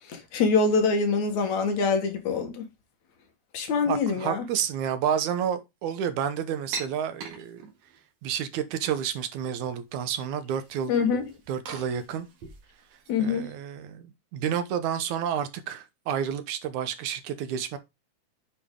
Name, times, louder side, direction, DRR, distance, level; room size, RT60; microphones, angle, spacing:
voice 1, 0.3-2.7 3.5-4.4 10.9-11.3 13.1-13.5, left 4 dB, 75° left, 3.0 m, -24 dB
voice 2, 3.9-7.6 8.2-10.9 11.5-12.3 13.2-17.8, right 8 dB, 85° right, 2.4 m, -30 dB
sound 1, 6.7-8.0 8.7-9.3 9.6-10.1 10.4-13.1, right 4 dB, 70° right, 3.1 m, -42 dB
9.2 x 4.9 x 3.7 m
omnidirectional pair, 3.3 m